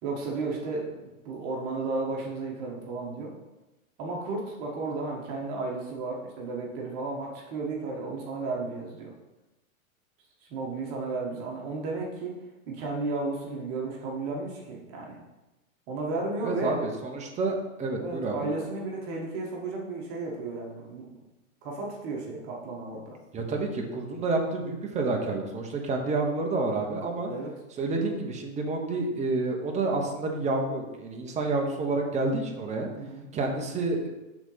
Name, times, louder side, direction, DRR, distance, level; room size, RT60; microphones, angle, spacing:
voice 1, 0.0-3.3 4.0-9.1 10.5-12.3 12.7-15.2 15.9-16.7 18.0-21.2 21.6-23.2 27.3-27.5 32.9-33.3, right 3 dB, 40° right, -1 dB, 1.6 m, -33 dB
voice 2, 16.4-18.5 23.3-27.3 27.8-32.9 33.3-34.1, right 3 dB, 15° right, 2 dB, 0.9 m, -29 dB
6.0 x 4.0 x 5.6 m, 1.0 s
hypercardioid pair, 130°, 42 cm